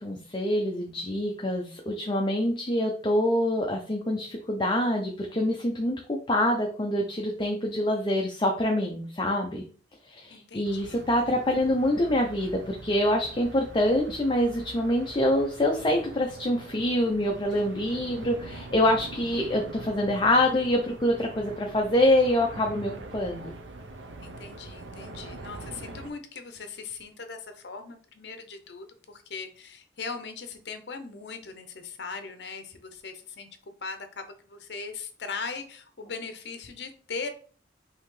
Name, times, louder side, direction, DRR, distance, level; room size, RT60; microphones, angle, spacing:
voice 1, 0.0-9.6 10.1-23.5, left 1 dB, 25° left, 2 dB, 0.5 m, -26 dB
voice 2, 10.3-11.0 24.2-33.5 33.8-37.3, left 4 dB, 65° left, 7 dB, 0.7 m, -39 dB
sound 1, 10.7-26.1, right 2 dB, 80° right, 0.6 m, -43 dB
5.5 x 2.8 x 3.1 m, 0.42 s
head